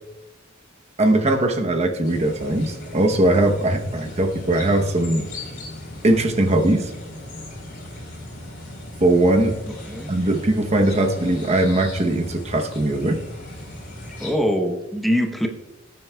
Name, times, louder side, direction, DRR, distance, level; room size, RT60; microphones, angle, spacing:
voice 1, 1.0-5.3 6.0-6.9 9.0-9.5 10.1-13.2, right 1 dB, 35° right, 5 dB, 0.8 m, -20 dB
sound 1, 2.0-14.3, left 1 dB, 45° left, 4.0 m, -37 dB
voice 2, 14.2-15.5, equal, ahead, 3 dB, 0.8 m, -23 dB
18.5 x 9.4 x 2.3 m, 1.0 s
head